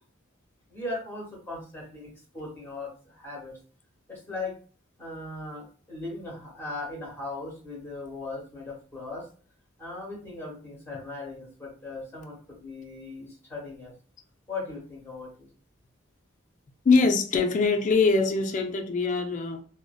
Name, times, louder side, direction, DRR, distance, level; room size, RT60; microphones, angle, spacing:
voice 1, 0.7-3.5 4.1-4.5 5.0-9.2 9.8-13.9 14.5-15.5, left 2 dB, 10° left, 1.1 m, -38 dB
voice 2, 16.8-19.6, left 4 dB, 40° left, 0.4 m, -23 dB
2.6 x 2.1 x 2.3 m
head